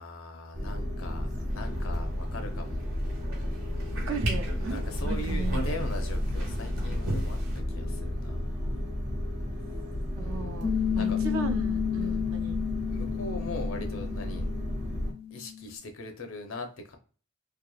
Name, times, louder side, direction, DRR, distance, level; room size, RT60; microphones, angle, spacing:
voice 1, 0.0-2.8 3.7-4.1 4.6-7.4 7.7-8.8 10.2-11.2 12.0-12.3 12.9-14.5 15.3-17.0, left 2 dB, 85° left, 0.6 m, -41 dB
sound 1, 0.5-15.1, left 1 dB, 35° right, 0.8 m, -32 dB
sound 2, 1.5-7.6, right 1 dB, 90° right, 1.1 m, -36 dB
voice 2, 3.9-5.8 10.1-12.6, right 4 dB, 70° right, 0.5 m, -36 dB
Piano, 10.6-15.7, left 9 dB, 10° left, 0.3 m, -32 dB
2.9 x 2.3 x 2.3 m
head